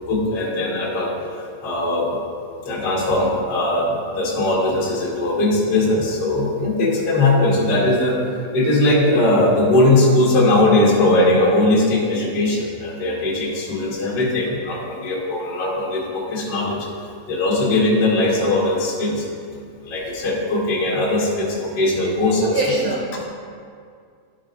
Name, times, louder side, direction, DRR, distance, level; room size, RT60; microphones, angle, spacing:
voice 1, 0.1-1.1 1.6-2.2 2.6-8.2 8.5-16.8 17.3-19.2 19.8-22.5, left 2 dB, 40° left, -6 dB, 1.5 m, -19 dB
voice 2, 22.4-23.3, right 2 dB, 85° right, -2 dB, 1.7 m, -23 dB
13.5 x 5.3 x 2.6 m, 2.2 s
omnidirectional pair, 4.3 m